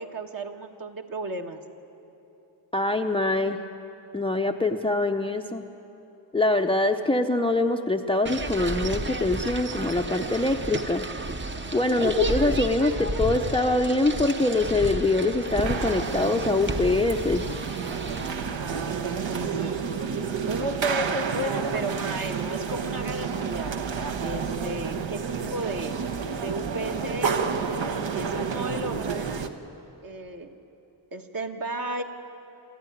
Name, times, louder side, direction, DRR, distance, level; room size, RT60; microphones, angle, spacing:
voice 1, 0.0-1.6 18.5-19.8 20.4-26.0 26.3-27.3 28.1-29.5 30.0-30.6 31.1-32.0, right 2 dB, 45° right, 4 dB, 1.6 m, -34 dB
voice 2, 2.7-3.6 4.1-5.6 6.3-11.0 11.7-17.5, left 2 dB, 10° left, 6 dB, 0.6 m, -24 dB
sound 1, 8.3-18.3, right 2 dB, 25° right, 0.9 m, -32 dB
sound 2, 15.6-29.5, right 6 dB, 65° right, 1.3 m, -30 dB
26.0 x 14.0 x 9.9 m, 3.0 s
wide cardioid pair, 130°, 48 cm